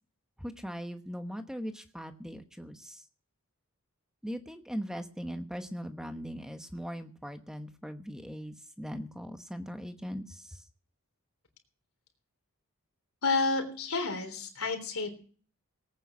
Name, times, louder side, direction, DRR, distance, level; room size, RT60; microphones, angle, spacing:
voice 1, 0.4-3.0 4.2-10.6, equal, 5° right, 8 dB, 1.1 m, -40 dB
voice 2, 13.2-15.1, left 3 dB, 75° left, 5 dB, 3.5 m, -30 dB
18.5 x 9.0 x 6.1 m, 0.42 s
head